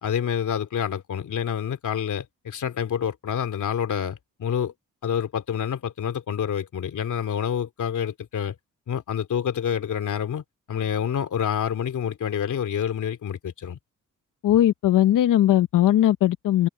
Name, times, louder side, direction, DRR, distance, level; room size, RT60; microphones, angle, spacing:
voice 1, 0.0-4.7 5.0-8.5 8.9-13.8, left 8 dB, 70° left, 3.0 m, -28 dB
voice 2, 14.4-16.7, left 12 dB, 85° left, 0.7 m, -19 dB
wide cardioid pair, 145°, 32 cm